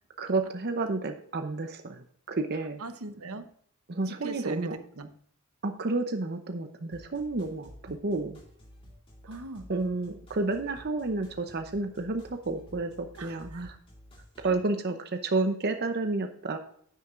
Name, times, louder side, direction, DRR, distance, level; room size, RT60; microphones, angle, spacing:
voice 1, 0.2-2.8 3.9-4.8 5.6-8.4 9.7-13.8 14.4-16.6, right 3 dB, 50° right, 7 dB, 0.7 m, -31 dB
voice 2, 2.8-3.4 4.1-5.1 7.9-8.0 9.3-9.6 13.2-13.6 14.4-14.5, right 3 dB, 80° right, 9 dB, 0.9 m, -40 dB
sound 1, 6.9-14.6, equal, 25° left, 2.4 m, -52 dB
10.5 x 8.7 x 2.5 m, 0.64 s
head